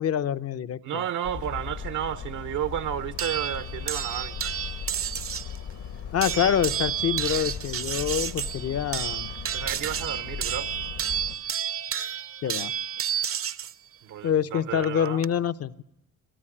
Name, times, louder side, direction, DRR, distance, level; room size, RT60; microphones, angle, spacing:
voice 1, 0.0-1.0 6.1-9.3 12.4-12.7 14.2-15.8, left 9 dB, 55° left, 0.8 m, -26 dB
voice 2, 0.8-4.4 9.5-10.7 14.0-15.2, right 10 dB, 75° right, 0.9 m, -32 dB
sound 1, 1.2-11.3, left 7 dB, 70° left, 1.7 m, -38 dB
sound 2, 3.2-5.6 6.2-13.7 14.8-15.3, right 9 dB, 45° right, 0.7 m, -31 dB
23.0 x 13.0 x 9.9 m
cardioid pair, 90°, 30 cm